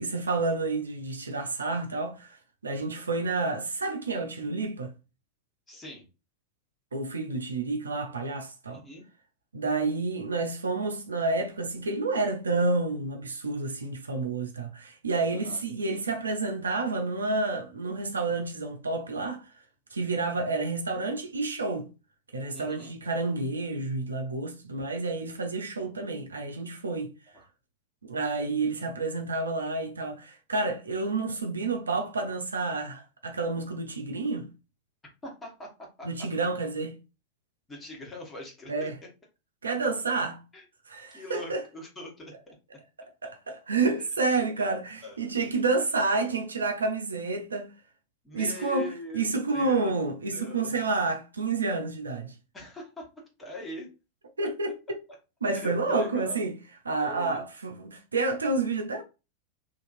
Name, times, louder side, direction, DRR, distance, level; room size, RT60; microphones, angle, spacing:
voice 1, 0.0-4.9 6.9-8.8 9.5-19.5 19.9-21.9 22.3-27.1 28.0-34.5 36.0-36.9 38.7-39.0 39.6-40.4 40.9-41.6 43.2-47.7 48.3-52.3 54.4-54.8 55.4-56.5 56.8-59.0, right 3 dB, 75° right, 0.6 m, -29 dB
voice 2, 5.7-6.0 8.7-9.0 15.3-15.6 22.5-22.9 27.3-27.5 35.2-36.1 37.7-38.9 40.5-40.6 41.1-42.5 45.0-45.5 48.2-49.9 50.3-50.7 52.5-53.9 54.4-54.5 55.5-56.4 57.0-57.4, left 1 dB, 15° left, 1.4 m, -42 dB
2.8 x 2.8 x 2.6 m
figure-of-eight pair, 90°, 0 cm